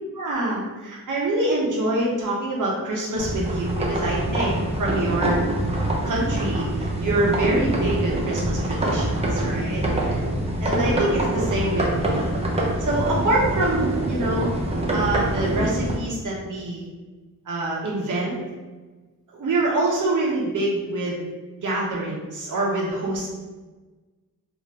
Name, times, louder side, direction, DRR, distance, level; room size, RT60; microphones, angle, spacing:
voice 1, 0.1-5.4 6.0-6.7 7.0-10.2 10.6-12.3 12.8-14.5 14.9-16.9 17.5-18.4 19.3-21.2 21.6-23.3, right 2 dB, 65° right, -3 dB, 1.1 m, -25 dB
sound 1, 3.2-16.0, right 1 dB, 20° right, 0.7 m, -25 dB
3.3 x 2.9 x 2.9 m, 1.3 s
cardioid pair, 75°, 34 cm